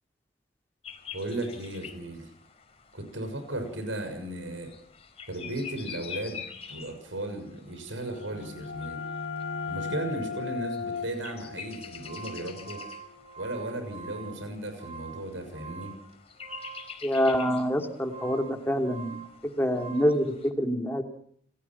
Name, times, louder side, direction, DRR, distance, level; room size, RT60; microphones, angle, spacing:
sound 1, 0.8-20.5, left 7 dB, 35° left, 4.5 m, -47 dB
voice 1, 1.1-2.3 2.9-4.7 5.3-9.0 9.7-12.8 13.4-15.9, right 1 dB, 85° right, 7 dB, 6.4 m, -36 dB
sound 2, 8.0-13.5, left 5 dB, 90° left, 1.7 m, -37 dB
sound 3, 11.8-20.3, right 5 dB, 35° right, 4.4 m, -45 dB
voice 2, 17.0-21.0, equal, 10° left, 4 dB, 3.1 m, -26 dB
30.0 x 19.5 x 6.0 m, 0.63 s
head